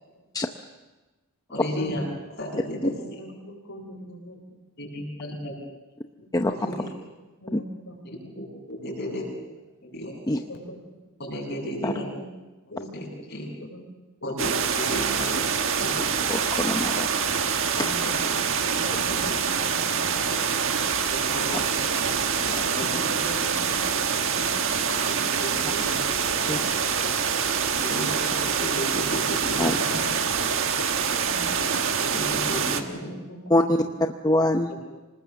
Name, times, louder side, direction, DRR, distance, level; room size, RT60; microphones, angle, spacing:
voice 1, 1.5-2.0 2.4-2.9 4.8-5.5 6.5-6.9 8.0-9.2 9.8-10.5 11.2-12.1 12.9-13.5 14.2-15.4 15.8-16.0 17.8-17.9 19.1-19.3 21.1-23.0 25.1-25.2 25.4-26.0 26.5-26.6 27.8-29.8 32.0-32.8, equal, 50° left, -1 dB, 7.4 m, -34 dB
voice 2, 2.6-4.4 5.2-5.4 6.6-6.8 7.4-8.3 9.0-9.2 10.5-10.8 11.9-12.3 12.7-12.9 13.2-13.3 13.6-13.8 14.2-14.3 15.2-15.3 17.6-18.3 18.8-20.8 22.8-23.8 24.1-24.5 24.9-25.1 25.5-25.8 26.3-26.6 29.6-30.1 31.2-31.5 32.7-33.9, equal, 65° left, 2 dB, 5.2 m, -41 dB
sound 1, 14.4-32.8, right 6 dB, 60° right, 1.5 m, -25 dB
voice 3, 16.3-17.1 26.5-26.6 29.6-29.8 33.5-33.8 34.2-34.7, left 1 dB, 15° left, 5 dB, 0.7 m, -23 dB
27.0 x 19.5 x 7.1 m, 1.1 s
head